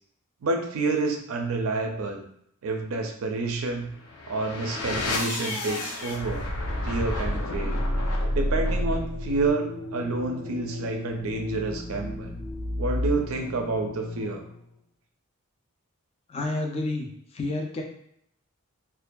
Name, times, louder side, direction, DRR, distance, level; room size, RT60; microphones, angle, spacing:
voice 1, 0.4-2.2 2.6-3.9 4.3-6.5 6.8-7.8 8.3-12.3 12.8-14.4, right 3 dB, 75° right, 3 dB, 0.4 m, -29 dB
sound 1, 3.9-14.7, left 1 dB, 85° left, 0.5 m, -31 dB
voice 2, 16.3-17.8, left 2 dB, 30° left, 2 dB, 0.3 m, -30 dB
2.6 x 2.3 x 2.2 m, 0.72 s
head